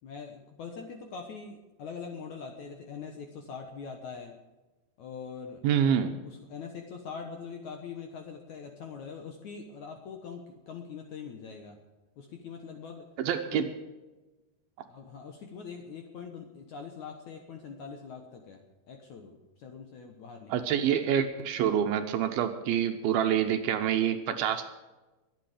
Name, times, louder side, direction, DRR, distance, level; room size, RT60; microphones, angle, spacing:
voice 1, 0.0-4.4 5.0-5.6 6.2-11.8 12.2-13.1 13.5-13.6 14.9-20.7, left 5 dB, 65° left, 3 dB, 2.0 m, -43 dB
voice 2, 5.6-6.2 13.2-13.7 20.5-24.7, right 9 dB, 75° right, 6 dB, 2.5 m, -27 dB
23.0 x 8.8 x 5.0 m, 1.1 s
omnidirectional pair, 4.8 m